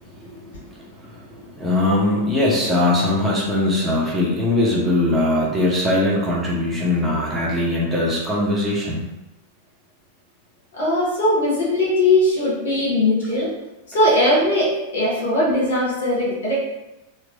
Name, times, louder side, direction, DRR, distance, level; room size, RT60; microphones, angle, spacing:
voice 1, 0.0-9.0, left 1 dB, 5° right, -6 dB, 0.9 m, -21 dB
voice 2, 10.7-13.5 13.9-16.6, left 1 dB, 60° left, -4 dB, 1.2 m, -19 dB
4.5 x 2.0 x 2.6 m, 0.98 s
figure-of-eight pair, 90°, 0 cm